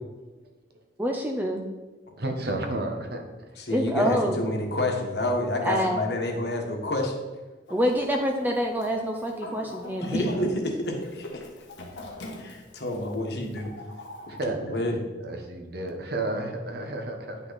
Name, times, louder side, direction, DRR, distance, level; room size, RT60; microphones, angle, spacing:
voice 1, 1.0-1.6 3.7-4.4 5.6-6.0 7.7-10.3, equal, 10° right, 2 dB, 0.5 m, -26 dB
voice 2, 2.2-3.2 14.3-14.6 15.2-17.4, right 2 dB, 60° right, 3 dB, 1.2 m, -31 dB
voice 3, 3.6-7.1 10.0-11.4 12.4-13.7 14.6-15.0, left 1 dB, 60° left, 2 dB, 1.5 m, -28 dB
Chicken rooster, 7.7-14.4, left 1 dB, 90° left, 1.5 m, -44 dB
9.7 x 5.7 x 4.1 m, 1.2 s
head